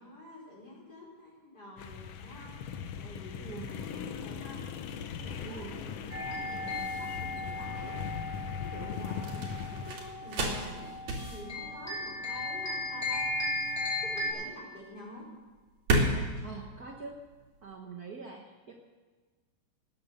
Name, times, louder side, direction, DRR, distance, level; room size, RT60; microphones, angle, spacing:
voice 1, 0.0-2.5 3.0-4.6 5.1-8.0 8.6-10.8 11.3-13.2 14.0-15.2, left 1 dB, 30° left, -4 dB, 5.1 m, -48 dB
sound 1, 1.8-9.9, left 7 dB, 70° left, 1.6 m, -40 dB
voice 2, 5.4-5.7 16.4-17.2 17.6-18.7, right 5 dB, 85° right, 1 dB, 0.8 m, -44 dB
sound 2, 5.7-17.7, right 1 dB, 65° right, 3.6 m, -36 dB
sound 3, 6.1-14.3, left 2 dB, 5° left, 6.2 m, -36 dB
19.0 x 9.5 x 6.6 m, 1.4 s
omnidirectional pair, 3.6 m